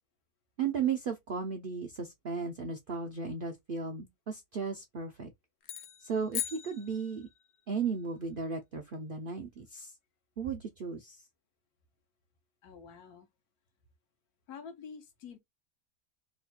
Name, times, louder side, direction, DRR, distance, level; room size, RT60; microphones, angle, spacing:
voice 1, 0.6-5.3 6.0-7.3 7.7-9.9 10.4-11.2, right 5 dB, 70° right, 0.5 m, -35 dB
sound 1, 5.6-7.6, left 11 dB, 70° left, 0.7 m, -40 dB
voice 2, 12.6-13.3 14.5-15.4, left 6 dB, 85° left, 1.3 m, -47 dB
3.2 x 2.2 x 4.1 m
omnidirectional pair, 1.6 m